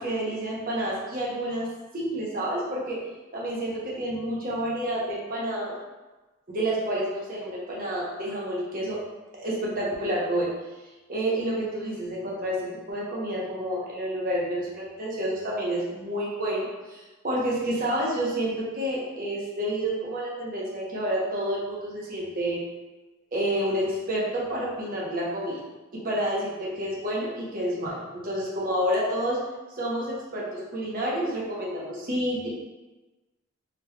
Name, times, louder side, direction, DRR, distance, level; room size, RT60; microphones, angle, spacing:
voice 1, 0.0-1.7 1.9-3.0 3.3-5.8 6.5-9.0 9.3-10.5 11.1-22.6 23.3-25.6 25.9-29.4 29.7-32.5, right 1 dB, 45° right, -5 dB, 0.9 m, -29 dB
3.7 x 3.1 x 2.3 m, 1.1 s
head